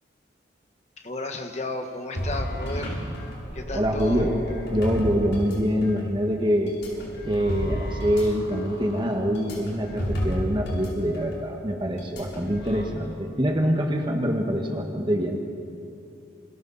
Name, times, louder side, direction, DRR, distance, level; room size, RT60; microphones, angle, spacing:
voice 1, 1.0-3.0 3.5-4.3 8.2-8.4, left 2 dB, 35° left, 4 dB, 1.5 m, -33 dB
sound 1, 2.2-6.0 6.7-10.9 11.1-11.3 12.0-12.8, equal, 75° left, 7.3 m, -32 dB
voice 2, 3.7-4.4 4.7-6.7 7.3-15.4, equal, 25° right, 2 dB, 1.6 m, -25 dB
28.5 x 27.0 x 4.2 m, 2.6 s
head